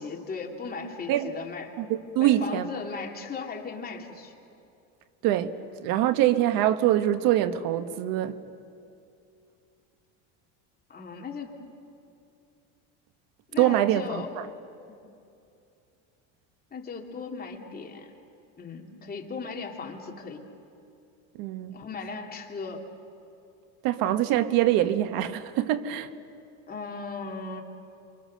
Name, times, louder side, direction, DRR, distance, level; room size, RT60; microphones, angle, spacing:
voice 1, 0.0-1.7 2.2-4.3 10.9-11.5 13.5-14.3 16.7-18.1 18.6-20.4 21.7-22.8 26.7-27.6, left 4 dB, 25° left, 2.8 m, -37 dB
voice 2, 1.8-2.7 5.2-8.4 13.6-14.5 21.3-21.7 23.8-26.1, right 12 dB, 70° right, 1.3 m, -24 dB
28.0 x 23.5 x 6.6 m
supercardioid pair, 120°, 36 cm